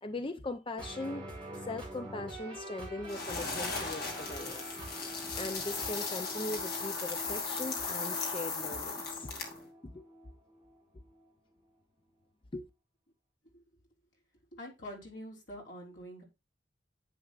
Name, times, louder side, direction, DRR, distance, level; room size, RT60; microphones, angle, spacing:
voice 1, 0.0-1.3 1.6-4.8 5.3-9.3 9.8-10.0 12.5-12.7, left 2 dB, 25° left, 0.5 m, -40 dB
sound 1, 0.8-11.3, right 1 dB, 5° left, 5.6 m, -46 dB
sound 2, 3.1-9.7, left 4 dB, 55° left, 2.7 m, -37 dB
voice 2, 14.5-16.2, equal, 75° left, 3.8 m, -45 dB
10.0 x 8.5 x 2.4 m
head